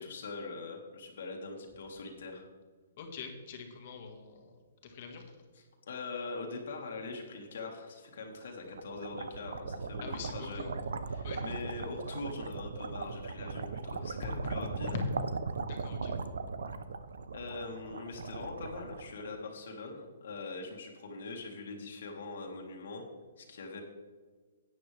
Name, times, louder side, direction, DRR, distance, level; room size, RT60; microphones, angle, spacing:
voice 1, 0.0-2.5 5.9-10.6 11.1-14.9 17.3-23.1 23.4-23.8, left 3 dB, 65° left, 1 dB, 1.9 m, -42 dB
voice 2, 3.0-5.4 10.0-10.7 11.2-11.4 14.9-15.1 15.6-16.2, left 5 dB, 40° left, 3 dB, 1.8 m, -42 dB
sound 1, 8.4-19.6, right 4 dB, 85° right, 0.7 m, -39 dB
11.5 x 9.2 x 3.4 m, 1.5 s
hypercardioid pair, 165°, 0 cm